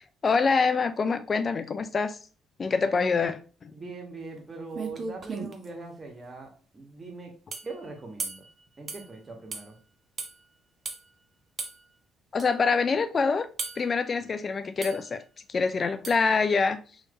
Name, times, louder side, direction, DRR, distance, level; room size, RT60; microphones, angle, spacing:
voice 1, 0.2-2.2 2.6-3.7 12.3-13.5 13.8-15.2 15.5-16.8, left 4 dB, 40° left, 0.3 m, -25 dB
voice 2, 2.9-3.3 3.7-7.3 7.6-8.4 8.8-9.7 14.2-14.3, right 3 dB, 30° right, 1.5 m, -41 dB
sound 1, 4.4-4.5 4.7-5.7 7.5-7.7 8.2-8.5 8.9-9.1 9.5-9.7 10.2-10.3 10.8-11.0 11.6-11.8 12.4-12.5 13.6-13.9 14.8-15.1 16.0-16.3, right 4 dB, 45° right, 0.8 m, -35 dB
3.1 x 2.9 x 3.9 m
hypercardioid pair, 45°, 0 cm